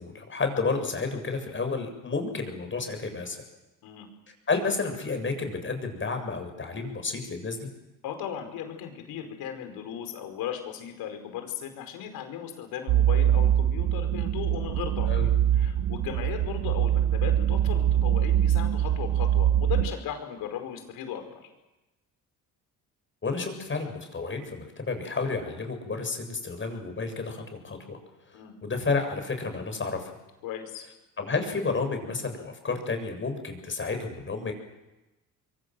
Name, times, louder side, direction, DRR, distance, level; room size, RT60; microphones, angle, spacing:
voice 1, 0.0-3.4 4.5-7.7 15.0-15.3 23.2-28.0 28.3-30.1 31.2-34.5, left 4 dB, 35° left, 6 dB, 7.4 m, -31 dB
voice 2, 8.0-15.1 15.5-21.5 28.3-28.5 30.4-30.9, left 9 dB, 80° left, 6 dB, 5.2 m, -37 dB
sound 1, 12.9-19.9, right 11 dB, 75° right, 1.0 m, -23 dB
26.0 x 23.0 x 7.9 m, 1.0 s
supercardioid pair, 75°, 35 cm